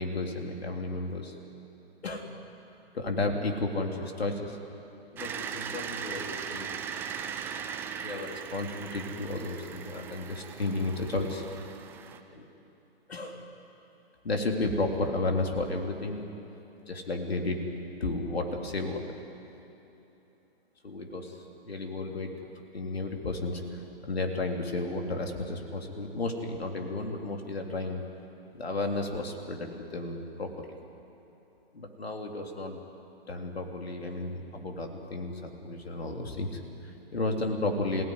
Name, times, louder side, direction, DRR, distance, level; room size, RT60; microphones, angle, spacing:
voice 1, 0.0-1.3 2.0-2.4 2.9-4.6 5.1-6.7 8.0-11.4 12.3-12.4 13.1-13.4 14.2-16.2 16.9-17.7 18.0-19.2 20.8-22.3 22.7-28.0 28.5-30.7 31.7-32.8 33.3-38.0, left 2 dB, 75° left, 2 dB, 3.5 m, -33 dB
sound 1, 5.2-12.2, right 7 dB, 5° right, 0.5 m, -39 dB
26.0 x 17.0 x 9.8 m, 2.9 s
figure-of-eight pair, 135°, 31 cm